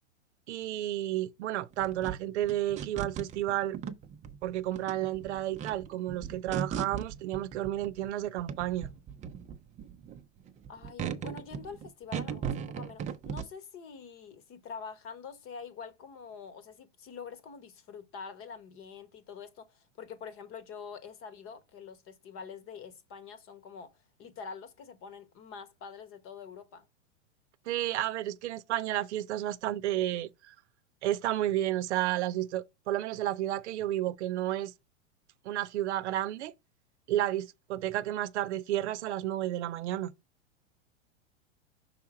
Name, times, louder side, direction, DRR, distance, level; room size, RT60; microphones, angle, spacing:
voice 1, 0.5-3.8 4.4-8.9 27.7-30.5 31.0-34.7 35.4-36.5 37.1-40.1, right 13 dB, 65° right, 0.7 m, -31 dB
sound 1, 1.7-8.1 8.4-13.4, right 7 dB, 20° right, 0.6 m, -38 dB
voice 2, 10.7-23.9 24.2-26.9, left 6 dB, 35° left, 1.1 m, -45 dB
5.7 x 3.6 x 4.8 m
hypercardioid pair, 115°, 37 cm